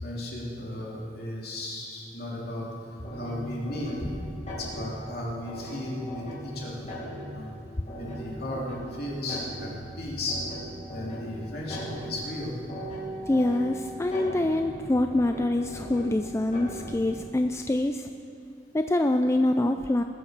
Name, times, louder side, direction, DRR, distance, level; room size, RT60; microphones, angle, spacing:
voice 1, 0.0-2.7 3.1-4.1 4.6-6.9 7.2-7.5 8.0-9.7 10.0-10.4 10.9-12.5, left 1 dB, 55° left, -4 dB, 3.2 m, -35 dB
sound 1, 3.0-17.2, equal, 40° left, 4.1 m, -39 dB
voice 2, 13.3-18.1 18.7-20.0, left 1 dB, 15° left, 6 dB, 0.3 m, -25 dB
20.0 x 8.3 x 6.5 m, 2.5 s
head